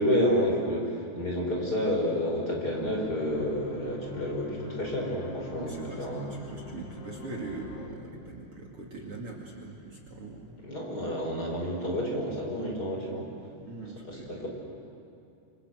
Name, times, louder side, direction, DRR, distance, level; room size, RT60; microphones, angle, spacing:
voice 1, 0.0-6.3 10.6-13.2 14.0-14.5, equal, 25° left, -1 dB, 5.4 m, -29 dB
sound 1, 2.6-7.9, left 3 dB, 70° left, 3.7 m, -45 dB
voice 2, 5.6-10.5 13.6-14.3, right 3 dB, 45° right, -2 dB, 3.2 m, -41 dB
28.5 x 26.5 x 7.9 m, 2.6 s
omnidirectional pair, 3.9 m